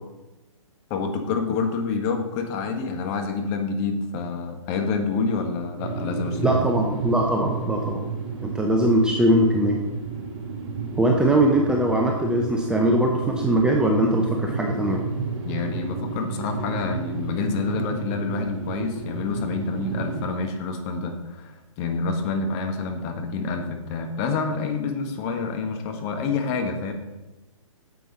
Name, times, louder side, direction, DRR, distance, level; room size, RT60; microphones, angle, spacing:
voice 1, 0.9-6.6 15.4-26.9, left 4 dB, 30° left, 5 dB, 1.4 m, -27 dB
sound 1, 5.8-20.3, right 4 dB, 50° right, 2.9 m, -31 dB
voice 2, 6.4-8.0 8.4-9.8 11.0-15.0, right 1 dB, 5° right, 0 dB, 0.7 m, -21 dB
9.4 x 7.4 x 4.1 m, 1.1 s
figure-of-eight pair, 130°, 17 cm